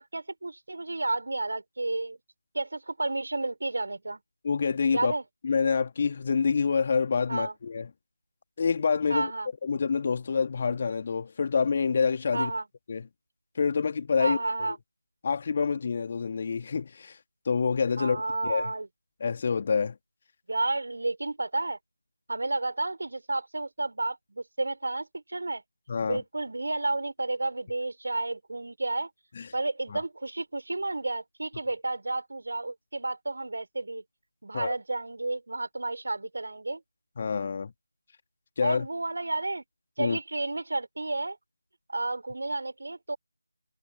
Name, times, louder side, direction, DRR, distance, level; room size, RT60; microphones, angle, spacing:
voice 1, 0.0-2.2 2.5-4.2 4.9-5.2 7.3-7.5 9.1-9.5 12.3-12.6 14.2-14.8 18.0-18.9 20.5-21.8 22.3-25.6 26.0-29.1 29.5-34.0 34.4-36.8 38.6-39.6 40.0-41.4 41.9-43.2, right 2 dB, 55° right, 3.8 m, -31 dB
voice 2, 4.4-5.1 5.4-7.9 8.6-9.3 9.6-12.5 12.9-13.1 13.6-14.4 15.2-17.2 17.5-18.7 19.2-20.0 25.9-26.2 29.4-29.5 29.9-30.0 34.5-34.7 37.2-37.7 38.6-38.9 40.0-40.2, left 5 dB, 30° left, 2.1 m, -27 dB
figure-of-eight pair, 165°, 0 cm